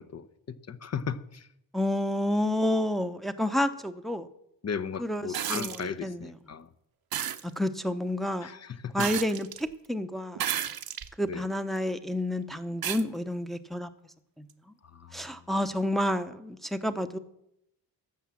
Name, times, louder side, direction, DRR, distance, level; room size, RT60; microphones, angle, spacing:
voice 1, 0.0-1.5 4.6-6.7 8.4-9.1 11.2-11.4 14.8-15.3, left 6 dB, 40° left, 14 dB, 0.8 m, -36 dB
voice 2, 1.7-4.3 5.0-6.2 7.4-8.5 8.9-10.4 11.2-13.9 14.4-14.5 15.1-17.2, left 1 dB, ahead, 8 dB, 0.8 m, -30 dB
sound 1, 5.3-5.8 7.1-7.4 9.0-9.6 10.4-11.1 11.8-11.9 12.8-13.0 14.5-14.6, right 10 dB, 60° right, 0.9 m, -32 dB
12.0 x 7.3 x 7.2 m, 0.80 s
cardioid pair, 85°, 41 cm